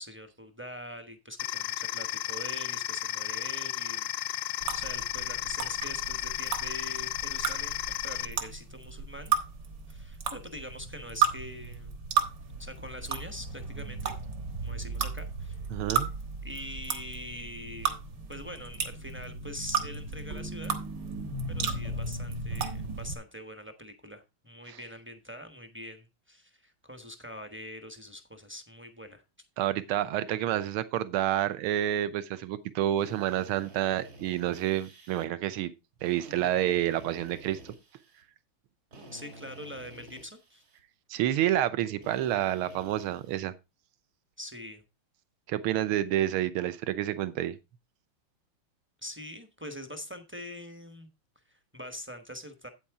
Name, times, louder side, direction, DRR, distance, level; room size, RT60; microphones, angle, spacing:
voice 1, 0.0-9.3 9.9-11.9 12.6-14.1 14.6-15.6 16.4-18.0 18.3-20.7 21.5-29.2 39.1-40.6 44.4-44.8 49.0-51.1 51.5-52.7, equal, 10° right, 0.5 m, -44 dB
sound 1, 1.4-8.3, left 16 dB, 90° left, 1.6 m, -34 dB
sound 2, 4.6-23.1, right 6 dB, 55° right, 1.9 m, -34 dB
voice 2, 15.7-16.1 24.7-24.8 29.6-35.7 36.0-37.6 41.1-43.5 45.5-47.6, right 12 dB, 90° right, 1.7 m, -29 dB
Drill, 33.0-35.3 36.0-38.2 38.9-40.8 42.0-43.4, right 1 dB, 70° right, 3.7 m, -50 dB
8.7 x 8.4 x 3.5 m
omnidirectional pair, 2.3 m